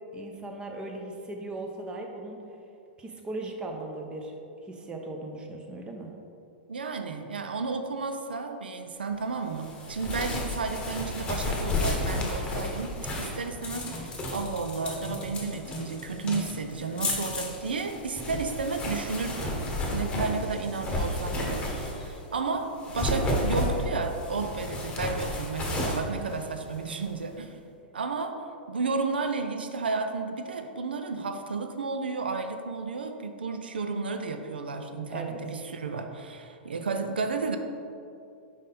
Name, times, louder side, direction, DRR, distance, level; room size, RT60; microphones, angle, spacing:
voice 1, 0.1-2.4 3.0-4.3 4.6-6.1 35.1-35.4, right 2 dB, 15° right, 2 dB, 0.8 m, -38 dB
voice 2, 6.7-27.6 27.9-28.4 28.7-37.6, right 4 dB, 75° right, 6 dB, 0.5 m, -32 dB
sound 1, 9.6-22.2 22.7-27.0, left 1 dB, 20° left, 1.1 m, -32 dB
5.2 x 5.0 x 4.1 m, 2.6 s
figure-of-eight pair, 100°, 5 cm